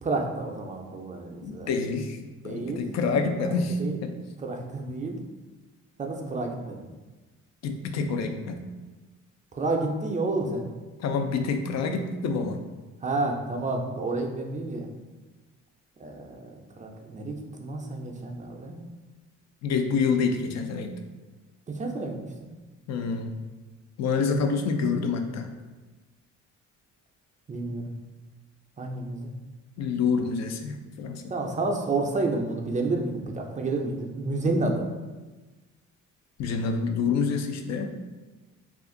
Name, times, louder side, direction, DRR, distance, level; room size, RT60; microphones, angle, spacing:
voice 1, 0.0-1.7 2.4-2.8 3.8-4.0 4.4-5.2 6.0-6.9 9.5-10.7 13.0-14.9 16.0-18.8 21.7-22.5 27.5-27.8 28.8-29.3 31.3-34.9, right 2 dB, 25° right, 2 dB, 0.4 m, -30 dB
voice 2, 1.4-2.2 2.4-4.1 7.6-8.6 11.0-12.6 19.6-20.9 22.9-23.3 24.0-25.5 29.8-31.2 36.4-37.9, left 5 dB, 60° left, 6 dB, 0.5 m, -27 dB
2.4 x 2.4 x 3.6 m, 1.2 s
cardioid pair, 90°, 30 cm